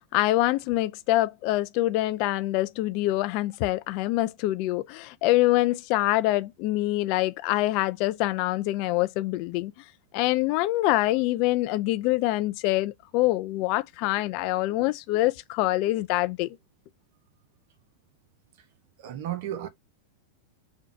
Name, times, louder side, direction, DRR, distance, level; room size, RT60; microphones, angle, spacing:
voice 1, 0.1-9.7 10.1-16.5, left 17 dB, 50° left, 0.4 m, -25 dB
voice 2, 19.0-19.7, right 11 dB, 55° right, 0.7 m, -33 dB
3.8 x 2.3 x 4.5 m
hypercardioid pair, 95°, 0 cm